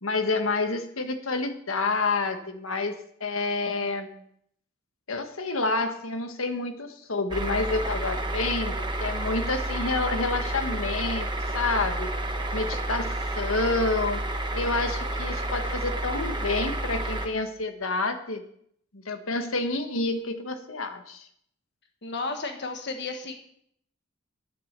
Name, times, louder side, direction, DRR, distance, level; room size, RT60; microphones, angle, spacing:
voice 1, 0.0-4.2 5.1-8.7 9.0-11.3 11.5-12.1 12.5-14.2 14.5-18.4 18.9-21.3, left 3 dB, 85° left, 7 dB, 1.4 m, -28 dB
sound 1, 7.3-17.3, right 1 dB, 20° right, 1.2 m, -30 dB
voice 2, 22.0-23.3, left 3 dB, 55° left, 4 dB, 1.3 m, -33 dB
10.5 x 8.7 x 6.7 m, 0.68 s
head